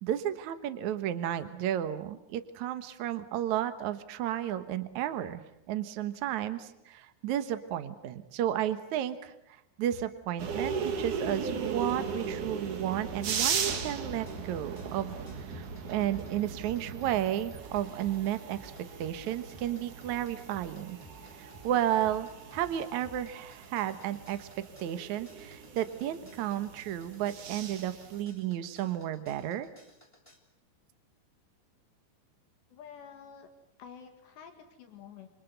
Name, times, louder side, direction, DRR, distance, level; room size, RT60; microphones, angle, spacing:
voice 1, 0.0-18.7 19.0-21.0 21.4-24.5 24.8-29.7, right 11 dB, 75° right, 10 dB, 1.7 m, -33 dB
sound 1, 10.4-28.2, right 6 dB, 50° right, 3.1 m, -38 dB
sound 2, 13.1-30.4, equal, 10° left, 2.6 m, -56 dB
voice 2, 32.7-33.5 33.8-35.3, left 7 dB, 70° left, 5 dB, 4.0 m, -49 dB
27.0 x 27.0 x 8.1 m, 0.81 s
omnidirectional pair, 5.3 m